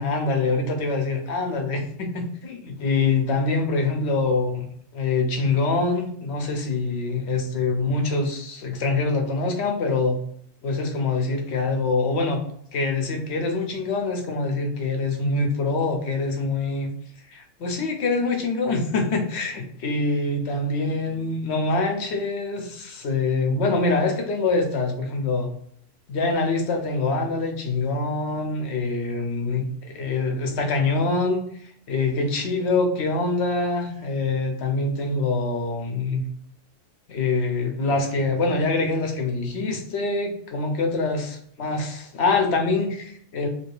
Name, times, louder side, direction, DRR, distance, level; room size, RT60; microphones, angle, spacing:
voice 1, 0.0-4.7 4.9-10.2 10.6-12.4 12.7-16.9 17.3-25.5 26.1-31.4 31.9-36.2 37.1-43.5, left 3 dB, 65° left, 4 dB, 0.9 m, -24 dB
2.9 x 2.6 x 3.2 m, 0.65 s
omnidirectional pair, 1.3 m